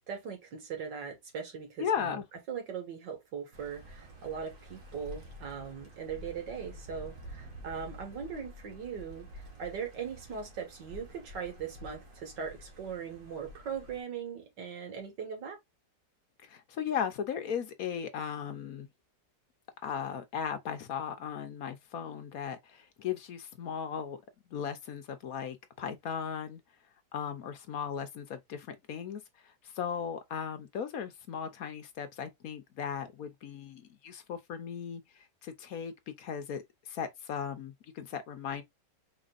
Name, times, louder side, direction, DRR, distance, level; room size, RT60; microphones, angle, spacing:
voice 1, 0.0-2.2 2.5-15.6, right 7 dB, 90° right, 2.3 m, -40 dB
voice 2, 1.8-2.2 16.4-18.9 19.8-24.2 24.5-26.6 27.1-38.6, left 7 dB, 60° left, 1.1 m, -37 dB
sound 1, 3.5-14.0, equal, 50° right, 1.9 m, -49 dB
5.1 x 4.1 x 2.4 m
omnidirectional pair, 1.8 m